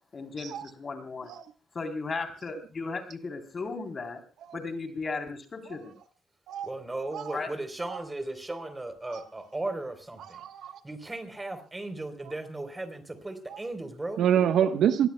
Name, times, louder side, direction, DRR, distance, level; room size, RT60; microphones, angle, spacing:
voice 1, 0.1-1.3 1.7-4.2 4.5-5.9 7.3-7.5, left 4 dB, 40° left, 3.7 m, -36 dB
voice 2, 6.6-10.4 10.8-14.2, right 2 dB, 15° right, 3.8 m, -36 dB
voice 3, 10.3-10.8 14.2-15.1, right 9 dB, 75° right, 1.2 m, -25 dB
25.5 x 19.5 x 2.3 m
cardioid pair, 90°, 0 cm